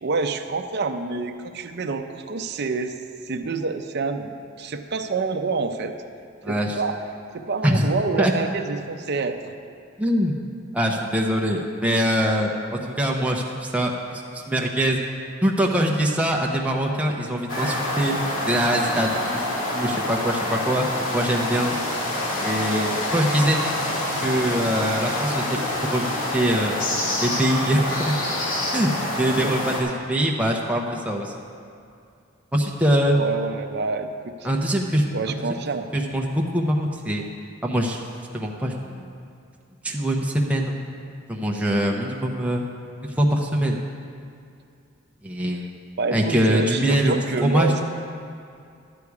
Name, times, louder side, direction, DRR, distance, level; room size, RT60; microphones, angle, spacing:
voice 1, 0.0-2.9 3.3-5.9 6.5-6.9 7.3-9.5 29.4-29.8 33.1-34.3 35.1-35.9 46.0-47.8, right 4 dB, 55° right, 5 dB, 0.6 m, -27 dB
voice 2, 6.4-6.8 7.6-7.9 8.2-8.3 10.0-10.4 10.7-15.0 15.4-18.1 18.5-20.9 21.1-21.7 22.4-23.6 24.2-25.4 25.8-26.8 27.2-28.1 28.7-28.9 29.2-31.3 32.5-33.2 34.4-35.1 35.5-35.6 35.9-37.2 37.6-38.0 38.3-39.1 39.8-40.8 41.3-42.6 43.0-43.8 45.2-45.6 46.1-47.1 47.4-47.8, equal, 5° right, -1 dB, 0.8 m, -23 dB
sound 1, 17.5-29.8, left 1 dB, 80° left, 2.0 m, -26 dB
12.0 x 8.3 x 4.8 m, 2.4 s
head